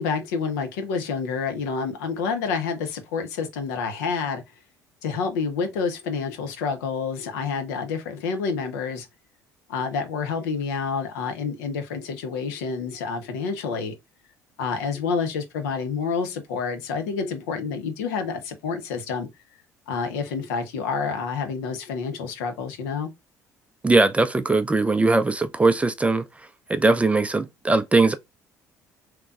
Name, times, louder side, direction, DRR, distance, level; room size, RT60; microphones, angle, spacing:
voice 1, 0.0-4.4 5.0-9.1 9.7-13.9 14.6-19.3 19.9-23.1, left 5 dB, 70° left, 0.9 m, -28 dB
voice 2, 23.8-26.2 26.7-28.2, right 3 dB, 15° right, 0.4 m, -20 dB
3.4 x 3.0 x 2.4 m
figure-of-eight pair, 60°, 9 cm